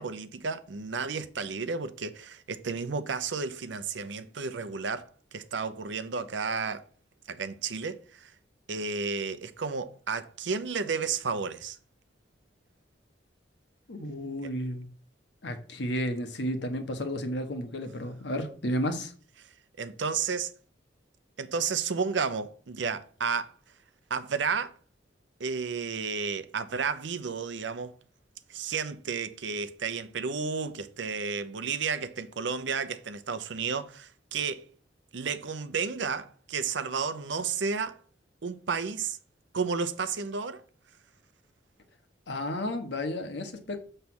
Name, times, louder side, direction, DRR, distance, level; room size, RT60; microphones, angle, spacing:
voice 1, 0.0-6.8 7.3-8.3 8.7-11.8 14.4-14.5 19.8-20.5 21.4-23.5 24.1-24.7 25.4-27.9 28.5-34.7 35.1-38.0 38.4-39.2 39.5-40.6, right 5 dB, 75° right, 0.6 m, -32 dB
voice 2, 13.9-14.9 15.4-19.1 42.3-43.8, equal, 70° left, 1.1 m, -32 dB
6.9 x 3.3 x 6.0 m
head